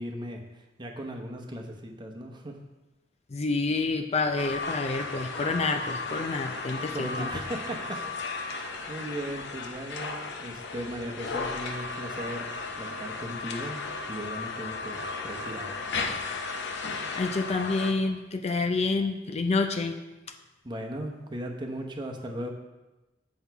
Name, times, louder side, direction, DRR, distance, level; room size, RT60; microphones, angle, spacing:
voice 1, 0.0-2.6 6.9-8.0 8.4-12.5 12.7-13.8 14.1-16.0 20.6-22.5, right 1 dB, 25° right, 2 dB, 0.9 m, -37 dB
voice 2, 3.3-7.3 16.8-20.0, left 3 dB, 35° left, 6 dB, 0.4 m, -28 dB
sound 1, 4.4-17.9, left 4 dB, 65° left, 0.8 m, -35 dB
8.0 x 5.5 x 4.6 m, 1.1 s
head